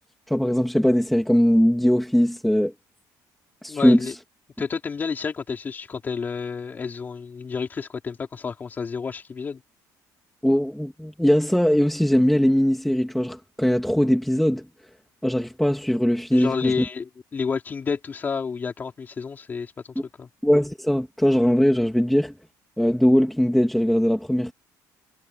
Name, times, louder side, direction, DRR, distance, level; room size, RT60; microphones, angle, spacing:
voice 1, 0.3-2.7 3.6-4.1 10.4-14.7 15.2-16.8 20.4-22.3 22.8-24.5, equal, ahead, 2.6 m, -20 dB
voice 2, 3.7-4.1 4.6-9.6 16.3-19.7 20.2-20.3, left 5 dB, 25° left, 4.3 m, -30 dB
cardioid pair, 165°, 8 cm